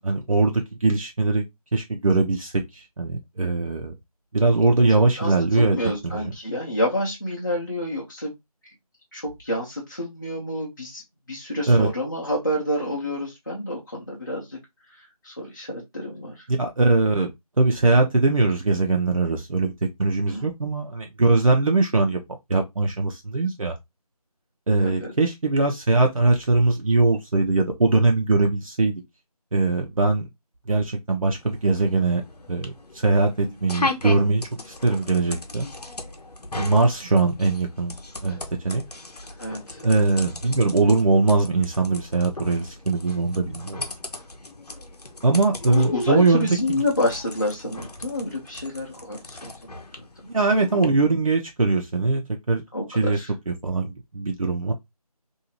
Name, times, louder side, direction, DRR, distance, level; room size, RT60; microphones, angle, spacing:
voice 1, 0.0-1.4 1.7-3.9 4.3-5.8 6.0-6.3 11.7-11.9 16.6-17.3 17.6-19.7 20.0-22.2 22.5-23.7 24.7-28.9 29.5-30.3 30.7-32.2 32.5-32.7 33.0-35.7 36.6-37.9 38.2-38.4 38.6-38.8 39.8-43.8 45.2-46.8 50.3-52.2 52.5-52.6 52.9-53.2 53.5-54.7, right 3 dB, 60° right, 0.6 m, -21 dB
voice 2, 5.1-8.3 9.1-11.0 11.3-14.6 15.2-16.4 20.1-20.4 24.8-25.1 33.4-33.5 39.4-39.8 45.7-49.5 50.0-50.1 52.7-53.3, left 1 dB, 30° left, 0.7 m, -28 dB
sound 1, 31.3-50.8, left 2 dB, 80° left, 0.8 m, -37 dB
2.7 x 2.4 x 2.9 m
figure-of-eight pair, 175°, 20 cm